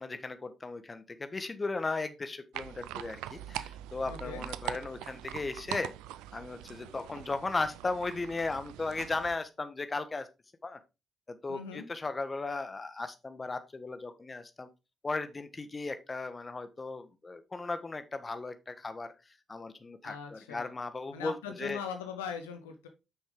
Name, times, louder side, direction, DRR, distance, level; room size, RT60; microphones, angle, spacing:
voice 1, 0.0-5.9 6.3-10.3 10.6-10.8 11.3-14.7 15.0-19.1 19.5-21.8, left 3 dB, 30° left, 10 dB, 1.3 m, -36 dB
sound 1, 2.5-9.3, right 13 dB, 70° right, 0.4 m, -42 dB
voice 2, 4.1-4.4 11.5-11.8 20.0-20.7 21.1-22.9, left 6 dB, 80° left, 6 dB, 1.0 m, -40 dB
8.3 x 6.1 x 3.7 m, 0.27 s
figure-of-eight pair, 40°, 0 cm